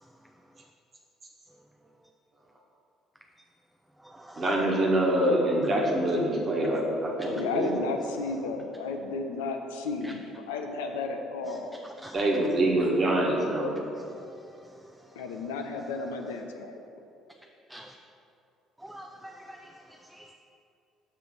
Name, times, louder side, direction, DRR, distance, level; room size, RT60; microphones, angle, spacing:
voice 1, 4.4-7.8 12.1-13.7, right 1 dB, 35° right, -2 dB, 1.4 m, -25 dB
voice 2, 7.3-11.7 15.2-16.8, left 4 dB, 70° left, 4 dB, 0.5 m, -33 dB
voice 3, 18.8-19.6 20.1-20.3, right 1 dB, 5° right, 2 dB, 0.4 m, -45 dB
6.7 x 3.4 x 6.1 m, 2.6 s
figure-of-eight pair, 50°, 0 cm